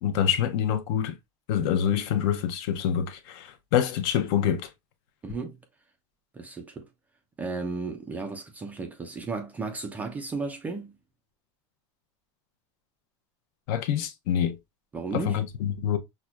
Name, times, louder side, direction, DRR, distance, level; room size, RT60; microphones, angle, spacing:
voice 1, 0.0-1.2 1.5-4.7 13.7-14.6 15.1-16.0, left 9 dB, 50° left, 0.6 m, -26 dB
voice 2, 5.2-5.6 6.3-6.9 7.4-11.0 14.9-15.4, right 4 dB, 10° right, 0.3 m, -34 dB
5.8 x 2.1 x 2.2 m
supercardioid pair, 170°, 16 cm